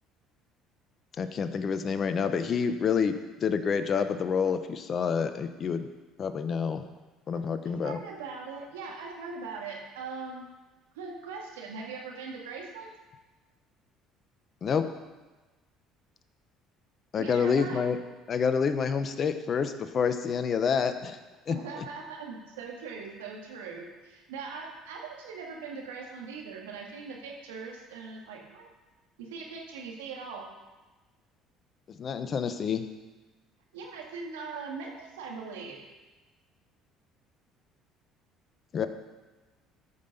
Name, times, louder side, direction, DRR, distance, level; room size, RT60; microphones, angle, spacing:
voice 1, 1.2-3.2 3.4-5.9 6.2-6.8 7.3-8.0 14.6-14.9 17.1-18.0 18.3-21.2 21.5-21.9 32.0-32.9 38.7-38.9, left 6 dB, 45° left, 9 dB, 1.0 m, -28 dB
voice 2, 7.8-10.4 11.0-12.9 17.2-17.8 21.5-28.7 29.2-30.4 33.7-35.8, right 4 dB, 90° right, 0 dB, 2.2 m, -40 dB
14.0 x 5.8 x 6.7 m, 1.2 s
hypercardioid pair, 70°, 0 cm